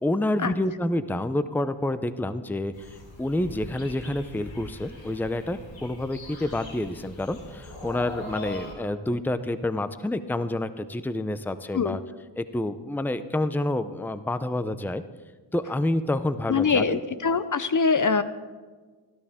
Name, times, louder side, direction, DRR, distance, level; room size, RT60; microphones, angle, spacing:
voice 1, 0.0-12.0 12.4-15.0 15.5-17.0, left 1 dB, 5° left, 12 dB, 0.7 m, -28 dB
sound 1, 2.7-8.7, left 1 dB, 75° left, 3.1 m, -41 dB
voice 2, 16.5-18.2, left 5 dB, 45° left, 13 dB, 0.7 m, -23 dB
19.5 x 12.5 x 3.7 m, 1.4 s
cardioid pair, 50°, 45 cm